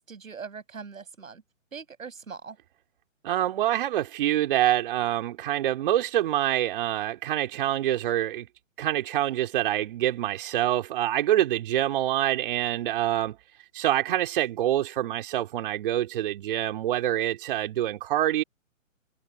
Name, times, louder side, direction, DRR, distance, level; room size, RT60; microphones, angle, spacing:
voice 1, 0.0-1.4 1.7-2.6, right 5 dB, 75° right, 7.8 m, -41 dB
voice 2, 3.2-8.5 8.8-13.4 13.7-18.4, right 13 dB, 40° right, 3.7 m, -26 dB
hypercardioid pair, 145°, 40 cm